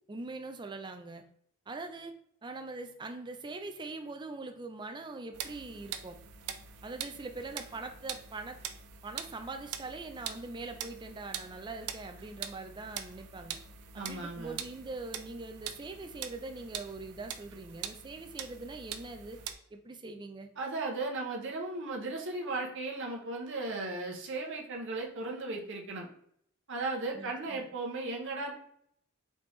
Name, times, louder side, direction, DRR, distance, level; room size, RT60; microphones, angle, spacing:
voice 1, 0.1-1.2 1.7-2.1 2.4-6.2 6.8-8.6 9.0-13.6 13.9-19.4 19.7-20.5 27.1-27.7, right 3 dB, 20° right, 6 dB, 0.4 m, -42 dB
sound 1, 5.3-19.5, right 8 dB, 85° right, 0.4 m, -43 dB
voice 2, 13.9-14.6 20.6-26.1 26.7-28.5, right 3 dB, 55° right, 0 dB, 0.8 m, -36 dB
4.2 x 3.4 x 3.1 m, 0.68 s
head